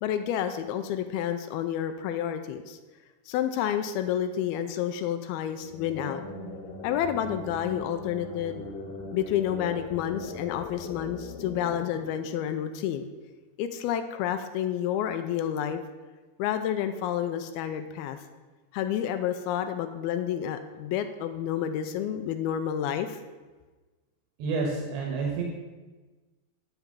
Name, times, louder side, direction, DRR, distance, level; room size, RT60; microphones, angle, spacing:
voice 1, 0.0-2.8 3.3-6.2 6.8-8.6 9.1-13.1 13.6-15.8 16.4-18.2 18.7-23.2, left 10 dB, 85° left, 9 dB, 2.4 m, -30 dB
sound 1, 5.5-13.1, left 3 dB, 65° left, 2.8 m, -40 dB
voice 2, 24.4-25.4, right 4 dB, 85° right, 0 dB, 3.3 m, -29 dB
10.5 x 5.9 x 7.0 m, 1.3 s
omnidirectional pair, 4.6 m